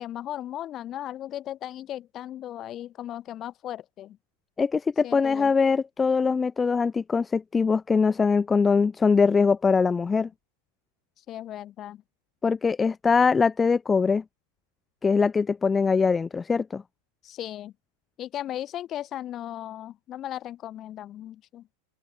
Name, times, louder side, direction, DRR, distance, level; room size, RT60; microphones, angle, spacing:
voice 1, 0.0-4.2 5.0-5.5 11.3-12.0 17.2-17.7 18.2-21.7, left 12 dB, 30° left, 4.2 m, -36 dB
voice 2, 4.6-10.3 12.4-14.2 15.0-16.8, left 5 dB, 15° left, 0.5 m, -22 dB
open air
figure-of-eight pair, 90°, 0 cm